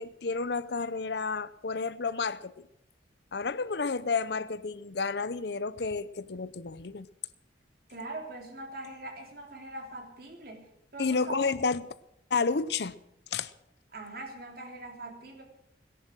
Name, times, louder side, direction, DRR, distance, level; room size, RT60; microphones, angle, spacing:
voice 1, 0.0-2.5 3.3-7.1 11.0-11.8 12.3-12.9 13.3-13.5, left 4 dB, 60° left, 16 dB, 0.6 m, -31 dB
voice 2, 7.9-11.4 13.9-15.4, right 2 dB, 55° right, 2 dB, 3.2 m, -42 dB
17.5 x 11.0 x 6.2 m, 0.80 s
head